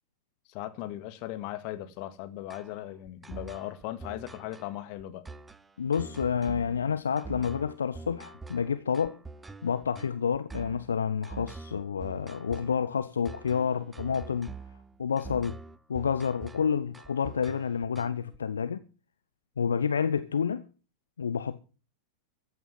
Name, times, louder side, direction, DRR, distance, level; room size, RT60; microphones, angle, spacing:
voice 1, 0.5-5.3, left 14 dB, 45° left, 1.8 m, -38 dB
sound 1, 2.5-18.4, right 4 dB, 10° right, 0.7 m, -45 dB
voice 2, 5.8-9.2 9.6-14.5 15.0-15.6 15.9-18.8 19.6-20.6 21.2-21.6, left 6 dB, 70° left, 0.7 m, -29 dB
14.5 x 9.3 x 7.5 m
figure-of-eight pair, 90°, 0 cm